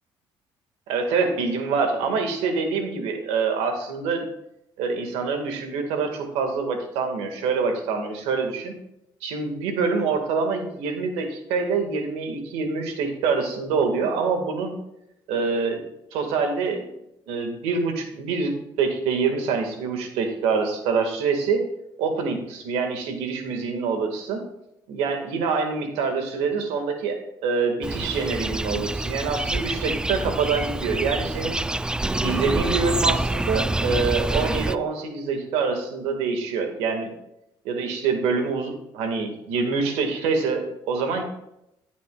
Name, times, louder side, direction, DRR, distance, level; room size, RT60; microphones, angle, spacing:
voice 1, 0.9-4.3 4.8-8.7 9.2-14.7 15.3-15.8 16.1-16.9 17.3-21.6 22.0-24.4 24.9-31.6 32.2-37.1 37.7-41.2, right 5 dB, 85° right, 5 dB, 1.7 m, -25 dB
sound 1, 27.8-34.8, right 2 dB, 10° right, 0.3 m, -26 dB
14.5 x 8.3 x 2.3 m, 0.83 s
supercardioid pair, 80°, 10 cm